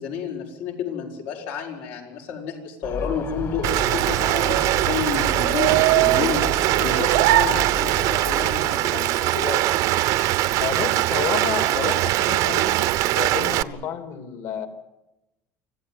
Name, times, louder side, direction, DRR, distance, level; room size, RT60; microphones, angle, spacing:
voice 1, 0.0-9.6, left 6 dB, 85° left, 1 dB, 5.8 m, -30 dB
Gull seagull, 2.8-8.7, left 4 dB, 45° left, 2.1 m, -34 dB
sound 1, 3.3-8.3, right 15 dB, 85° right, 1.2 m, -24 dB
Rain, 3.6-13.6, right 15 dB, 60° right, 0.8 m, -22 dB
voice 2, 10.6-14.7, left 8 dB, 60° left, 8 dB, 3.0 m, -30 dB
26.0 x 15.5 x 9.4 m, 0.95 s
cardioid pair, 150°, 7 cm